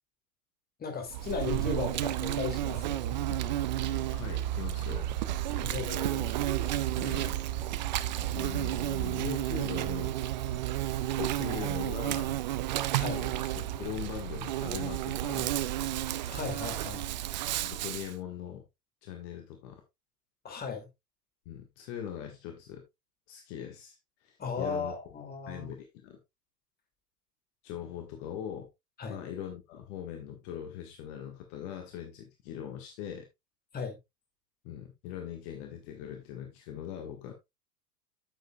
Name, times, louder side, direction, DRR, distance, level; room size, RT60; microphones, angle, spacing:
voice 1, 0.8-3.1 5.6-6.4 12.9-13.2 16.3-17.0 20.4-20.9 24.4-25.7 29.0-29.2 33.7-34.0, left 5 dB, 20° left, 2.5 m, -36 dB
Insect, 1.1-18.1, right 13 dB, 30° right, 0.4 m, -32 dB
voice 2, 4.1-5.2 6.7-7.4 8.3-10.1 11.0-12.3 13.1-15.6 17.6-18.6 19.0-19.8 21.4-22.8 23.3-25.0 25.5-26.2 27.6-28.7 29.1-33.2 34.6-37.3, left 10 dB, 45° left, 1.6 m, -41 dB
9.1 x 8.1 x 2.3 m
figure-of-eight pair, 95°, 48 cm